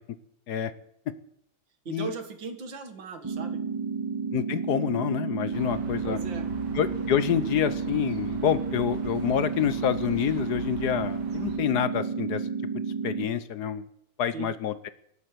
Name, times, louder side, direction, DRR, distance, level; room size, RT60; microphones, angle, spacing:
voice 1, 1.9-3.6 6.0-6.5 14.3-14.5, right 5 dB, 85° right, 7 dB, 2.5 m, -38 dB
sound 1, 3.2-13.3, right 5 dB, 40° right, 0.4 m, -31 dB
voice 2, 4.3-6.2 6.7-12.4 13.0-13.8 14.2-14.9, left 9 dB, 65° left, 14 dB, 1.3 m, -27 dB
sound 2, 5.5-11.6, right 3 dB, 65° right, 2.1 m, -42 dB
17.5 x 9.1 x 7.8 m, 0.72 s
omnidirectional pair, 2.0 m